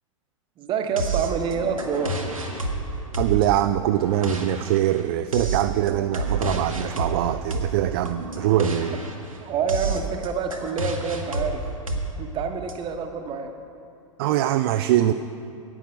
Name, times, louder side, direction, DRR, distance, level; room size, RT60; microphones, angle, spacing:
voice 1, 0.6-2.3 9.4-11.6 12.2-13.5, right 6 dB, 30° right, 6 dB, 1.0 m, -27 dB
sound 1, 1.0-12.7, right 2 dB, 85° right, 1.2 m, -30 dB
voice 2, 3.2-9.0 14.2-15.1, right 13 dB, 45° right, 10 dB, 0.4 m, -23 dB
11.0 x 8.9 x 6.4 m, 2.7 s
figure-of-eight pair, 95°, 17 cm